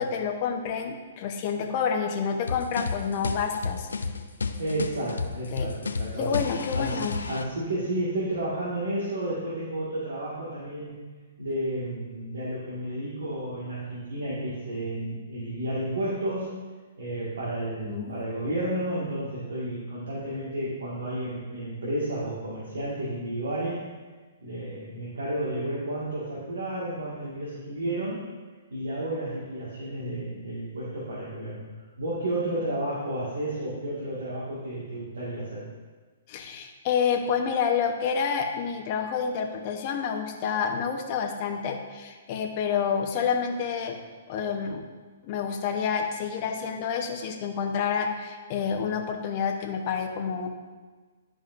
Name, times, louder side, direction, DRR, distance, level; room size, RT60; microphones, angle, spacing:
voice 1, 0.0-3.9 5.5-5.7 6.2-7.2 17.8-18.1 36.3-44.0 44.3-44.8 45.2-50.5, left 6 dB, 45° left, 3 dB, 0.9 m, -28 dB
sound 1, 2.5-7.4, left 4 dB, 85° left, 0.5 m, -31 dB
voice 2, 4.6-6.3 6.8-7.0 7.3-10.9 11.4-16.5 17.0-23.8 24.4-28.2 28.7-31.6 32.0-35.6, right 1 dB, 75° right, -8 dB, 1.9 m, -32 dB
10.5 x 5.0 x 2.6 m, 1.4 s
hypercardioid pair, 130°, 0 cm